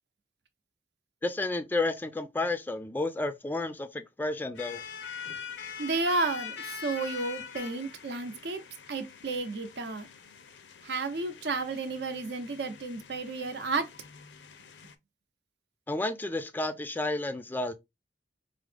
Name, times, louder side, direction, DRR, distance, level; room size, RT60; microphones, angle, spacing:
voice 1, 1.2-4.8 15.9-17.7, left 2 dB, 10° left, 0.3 m, -31 dB
sound 1, 4.5-14.9, left 7 dB, 85° left, 0.5 m, -44 dB
voice 2, 5.8-8.6 8.9-10.1 10.8-13.9, right 3 dB, 70° right, 0.7 m, -32 dB
4.8 x 2.0 x 3.3 m
head